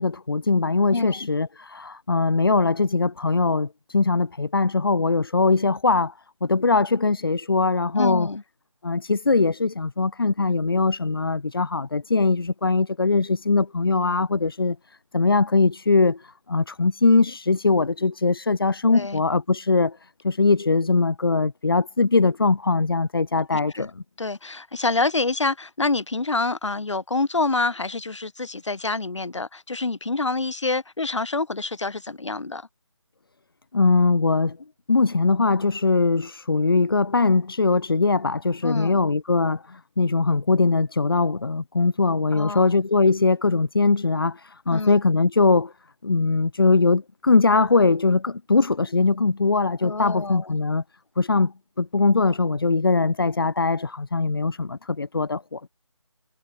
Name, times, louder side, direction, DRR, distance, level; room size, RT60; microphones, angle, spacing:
voice 1, 0.0-6.1 6.4-8.3 8.8-14.8 15.1-20.0 20.2-23.9 33.7-34.6 34.9-45.7 46.0-50.8 51.2-55.7, left 3 dB, 45° left, 1.2 m, -21 dB
voice 2, 0.9-1.3 8.0-8.4 18.9-19.2 23.5-23.9 24.2-32.7 38.6-39.0 42.3-42.6 44.7-44.9 49.8-50.6, left 3 dB, 65° left, 2.4 m, -27 dB
figure-of-eight pair, 175°, 17 cm